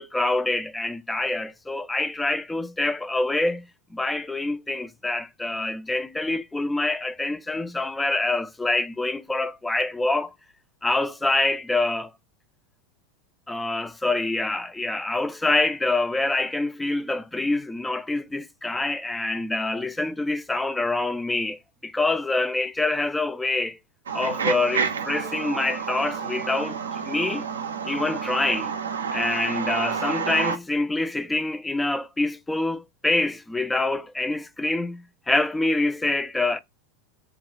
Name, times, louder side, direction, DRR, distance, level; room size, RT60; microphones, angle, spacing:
voice 1, 0.0-3.6 3.9-10.3 10.8-12.1 13.5-23.8 24.1-27.5 27.8-28.7 29.1-36.6, left 2 dB, 10° left, 0.3 m, -26 dB
sound 1, 24.1-30.6, right 6 dB, 70° right, 0.4 m, -29 dB
2.3 x 2.2 x 2.7 m
figure-of-eight pair, 80°, 0 cm